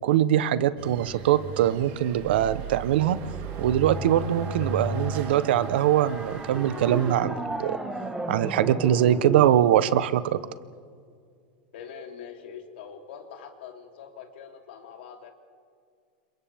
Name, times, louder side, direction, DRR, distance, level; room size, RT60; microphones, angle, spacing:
voice 1, 0.0-3.2 3.6-7.8 8.3-10.4, right 11 dB, 80° right, 14 dB, 1.0 m, -22 dB
sound 1, 0.8-7.2, right 3 dB, 50° right, 3.3 m, -36 dB
sound 2, 3.0-9.5, right 2 dB, 5° right, 1.6 m, -36 dB
voice 2, 11.7-15.3, left 7 dB, 75° left, 2 dB, 3.4 m, -43 dB
30.0 x 27.0 x 3.6 m, 2.1 s
supercardioid pair, 150°, 6 cm